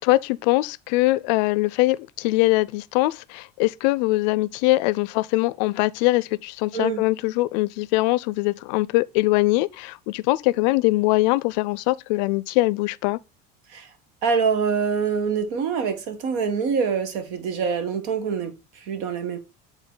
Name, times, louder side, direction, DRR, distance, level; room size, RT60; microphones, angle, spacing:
voice 1, 0.1-13.2, left 20 dB, 90° left, 0.4 m, -22 dB
voice 2, 6.7-7.0 13.7-13.9 14.2-19.4, right 6 dB, 80° right, 1.3 m, -25 dB
7.1 x 3.9 x 3.7 m
cardioid pair, 155°, 21 cm